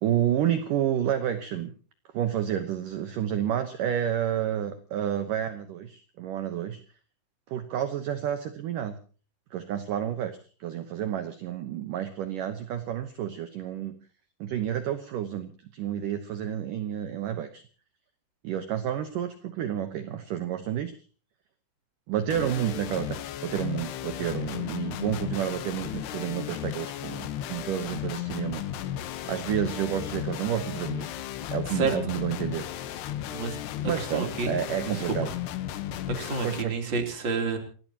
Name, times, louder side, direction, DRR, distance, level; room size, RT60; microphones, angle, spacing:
voice 1, 0.0-1.7 2.1-6.8 7.5-9.0 9.5-14.0 14.4-17.6 18.4-20.9 22.1-28.7 29.3-31.1 31.5-32.7 33.8-35.3 36.4-36.8, right 10 dB, 85° right, 9 dB, 1.8 m, -30 dB
sound 1, 22.3-36.6, left 11 dB, 75° left, 2.9 m, -35 dB
voice 2, 34.0-34.5 36.2-37.6, right 4 dB, 30° right, 4 dB, 3.2 m, -29 dB
29.0 x 16.0 x 2.9 m, 0.39 s
omnidirectional pair, 5.4 m